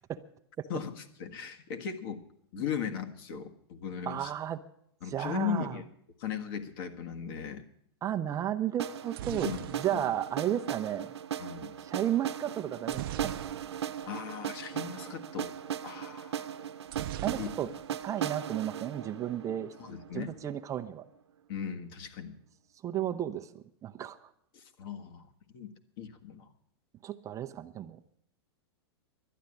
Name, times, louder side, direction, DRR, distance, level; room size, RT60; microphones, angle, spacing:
voice 1, 0.7-2.2 2.5-4.3 5.0-5.8 6.2-7.7 9.3-10.1 11.4-11.7 14.1-15.5 15.8-16.4 17.4-17.5 19.8-20.3 21.5-22.3 24.5-25.3 25.5-25.7 26.0-26.5, left 8 dB, 55° left, 6 dB, 1.7 m, -37 dB
voice 2, 4.1-4.6 5.1-5.8 8.0-11.1 11.8-13.4 17.2-17.7 18.0-19.7 20.1-21.0 22.8-24.3 27.0-28.0, right 11 dB, 25° right, 9 dB, 0.6 m, -33 dB
sound 1, 8.8-20.7, right 9 dB, 85° right, 0.8 m, -38 dB
sound 2, 8.9-10.9 12.9-14.0 14.3-14.5 14.7-14.9 16.9-18.0 18.3-18.9, right 13 dB, 60° right, 0.6 m, -41 dB
12.0 x 9.3 x 10.0 m, 0.70 s
hypercardioid pair, 130°, 14 cm